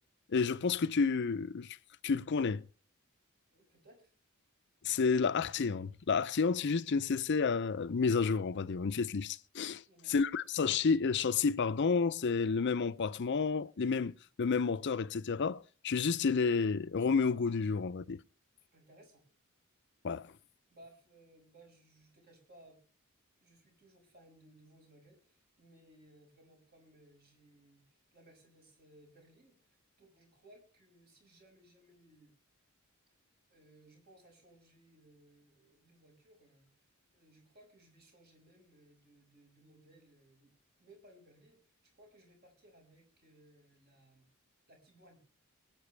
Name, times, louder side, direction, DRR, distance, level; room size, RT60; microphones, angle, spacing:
voice 1, 0.3-1.8 2.0-2.6 4.8-9.8 10.1-18.2 20.0-20.3, left 5 dB, 55° left, 0.5 m, -30 dB
voice 2, 3.5-4.1 9.8-10.2 18.7-19.2 20.7-22.8 23.4-32.3 33.5-36.9 37.1-44.3 44.7-45.2, right 1 dB, 50° right, 5.7 m, -62 dB
24.5 x 9.1 x 3.3 m
head